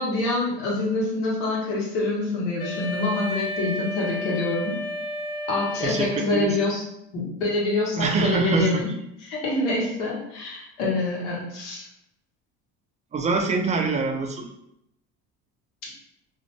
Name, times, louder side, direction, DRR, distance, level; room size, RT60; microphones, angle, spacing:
voice 1, 0.0-4.8 5.5-6.8 7.1-8.9 9.2-11.8, left 2 dB, 90° left, -4 dB, 1.1 m, -26 dB
Wind instrument woodwind instrument, 2.6-6.8, left 1 dB, 55° left, 0.9 m, -32 dB
voice 2, 5.8-6.6 8.0-8.8 13.1-14.5, right 4 dB, 25° right, 3 dB, 0.4 m, -24 dB
2.6 x 2.1 x 2.9 m, 0.78 s
supercardioid pair, 105°, 31 cm